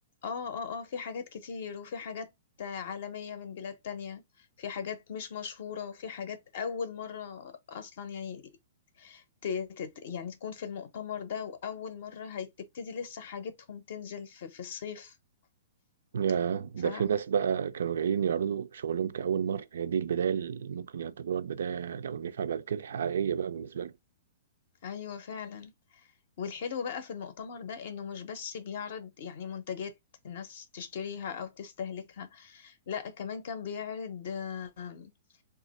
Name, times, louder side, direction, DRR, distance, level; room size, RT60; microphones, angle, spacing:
voice 1, 0.2-2.3 2.6-4.2 4.6-8.4 9.0-15.1 16.8-17.2 24.8-26.1 26.4-30.0 30.2-35.1, left 7 dB, 45° left, 0.5 m, -38 dB
voice 2, 16.1-23.9, right 7 dB, 80° right, 0.3 m, -30 dB
2.7 x 2.4 x 4.0 m
hypercardioid pair, 175°, 0 cm